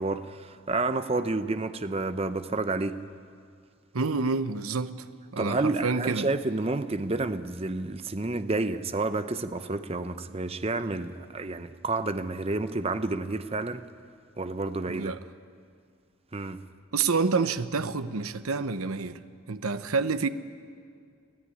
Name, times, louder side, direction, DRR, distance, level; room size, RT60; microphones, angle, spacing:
voice 1, 0.0-3.0 5.4-13.8 14.4-15.1 16.3-16.6, right 3 dB, 30° right, 0.7 m, -30 dB
voice 2, 3.9-5.1 5.3-6.3 14.9-15.2 16.9-19.2 19.5-20.3, right 4 dB, 85° right, 0.9 m, -28 dB
23.5 x 15.0 x 9.8 m
head